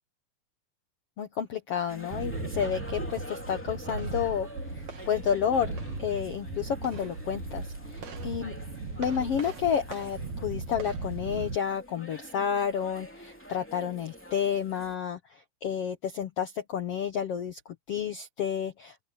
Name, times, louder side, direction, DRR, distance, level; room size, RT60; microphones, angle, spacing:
voice 1, 1.2-4.5 4.7-8.5 9.0-19.0, left 8 dB, 90° left, 1.3 m, -31 dB
sound 1, 1.9-15.0, equal, 5° left, 1.9 m, -46 dB
sound 2, 2.1-11.6, right 3 dB, 50° right, 3.9 m, -37 dB
open air
omnidirectional pair, 4.4 m